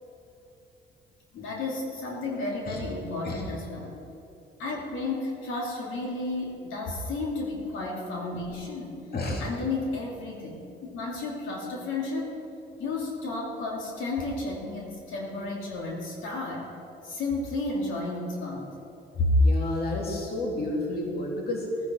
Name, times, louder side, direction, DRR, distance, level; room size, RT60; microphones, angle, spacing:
voice 1, 1.3-4.0 4.6-9.1 9.4-12.3 12.8-16.7 17.0-18.7, left 3 dB, 85° left, -2 dB, 2.7 m, -33 dB
voice 2, 19.2-21.7, left 1 dB, 50° left, -1 dB, 2.5 m, -26 dB
17.5 x 10.0 x 4.5 m, 2.8 s
cardioid pair, 90°, 20 cm